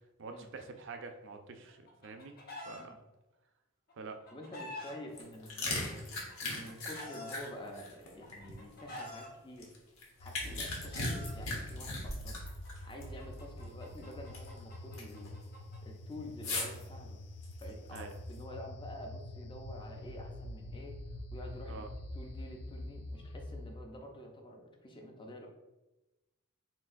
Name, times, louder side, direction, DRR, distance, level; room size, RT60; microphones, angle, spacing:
voice 1, 0.2-2.4 2.7-3.0 4.0-4.2 10.4-10.6 17.9-18.1 21.7-21.9, right 4 dB, 60° right, 6 dB, 0.5 m, -46 dB
Chicken rooster, 1.7-2.8 3.9-4.9 5.9-7.3 8.2-9.3 10.3-11.3 12.4-15.8, left 2 dB, 45° left, 1.0 m, -47 dB
voice 2, 4.3-6.1 6.4-9.7 10.2-12.4 12.8-15.4 15.8-17.2 17.6-21.0 21.3-21.9 22.1-25.5, left 1 dB, 20° left, 2 dB, 0.6 m, -48 dB
sound 1, 5.1-9.1 9.6-13.1 13.3-13.4 14.0-14.6 14.9-15.3 16.4-16.8 17.4-18.3, left 2 dB, 70° left, 1.1 m, -38 dB
sound 2, 10.2-23.8, left 1 dB, 90° left, 0.5 m, -45 dB
4.4 x 3.8 x 2.5 m, 1.0 s
head